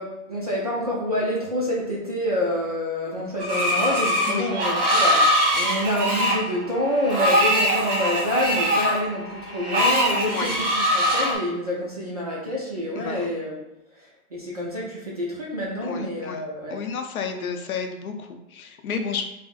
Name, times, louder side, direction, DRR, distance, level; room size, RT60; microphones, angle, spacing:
voice 1, 0.0-13.6 14.3-16.8, left 1 dB, 30° right, -5 dB, 0.3 m, -27 dB
Screech, 3.4-11.4, equal, 50° right, 1.2 m, -22 dB
voice 2, 12.9-13.3 15.8-16.4 16.7-19.3, left 6 dB, 70° left, 4 dB, 0.6 m, -31 dB
4.0 x 2.0 x 2.4 m, 0.91 s
hypercardioid pair, 140°, 45 cm